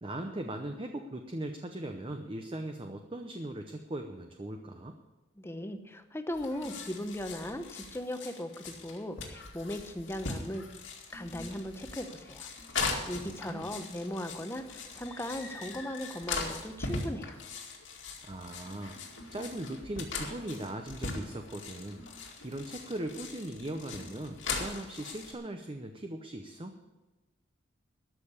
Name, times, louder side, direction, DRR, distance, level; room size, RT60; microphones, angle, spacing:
voice 1, 0.0-5.0 13.2-13.8 18.2-19.0 19.3-22.1 22.4-26.8, right 1 dB, 30° right, 5 dB, 0.7 m, -39 dB
voice 2, 5.4-10.6 11.1-12.5 13.1-17.4, left 1 dB, 15° left, 8 dB, 0.9 m, -38 dB
sound 1, 6.3-25.3, left 4 dB, 85° left, 2.3 m, -40 dB
13.0 x 6.7 x 8.2 m, 1.1 s
head